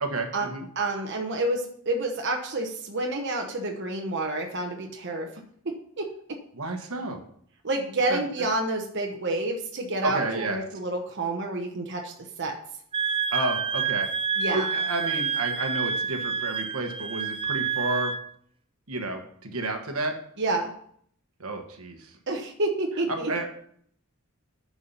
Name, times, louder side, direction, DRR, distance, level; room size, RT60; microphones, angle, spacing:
voice 1, 0.0-0.6 6.5-7.2 8.1-8.2 10.0-10.6 13.3-14.1 14.5-18.1 18.9-20.1 21.4-22.0 23.1-23.5, right 2 dB, 80° right, 4 dB, 1.3 m, -30 dB
voice 2, 0.7-5.3 5.6-6.1 7.6-12.1 12.4-12.6 14.4-14.7 20.4-20.7 22.3-23.3, right 2 dB, 55° right, 1 dB, 1.1 m, -29 dB
Wind instrument woodwind instrument, 12.9-18.2, right 6 dB, 25° right, 0.4 m, -28 dB
10.0 x 4.8 x 5.6 m, 0.63 s
head